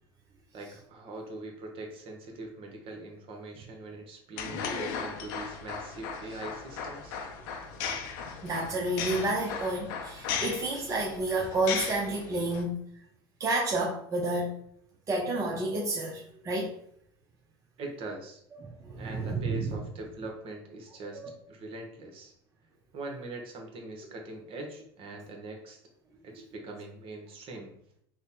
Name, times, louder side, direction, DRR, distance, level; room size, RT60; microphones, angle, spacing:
voice 1, 0.5-7.2 17.8-18.4 19.0-21.2 21.5-22.3 22.9-25.8 26.2-27.7, right 2 dB, 50° right, 2 dB, 1.0 m, -42 dB
sound 1, 4.4-12.6, left 6 dB, 65° left, 0.6 m, -37 dB
voice 2, 8.4-12.7 13.4-14.5 15.1-16.7 18.6-19.8, right 2 dB, 25° right, -2 dB, 0.6 m, -30 dB
3.2 x 2.1 x 4.1 m, 0.67 s
hypercardioid pair, 85°, 12 cm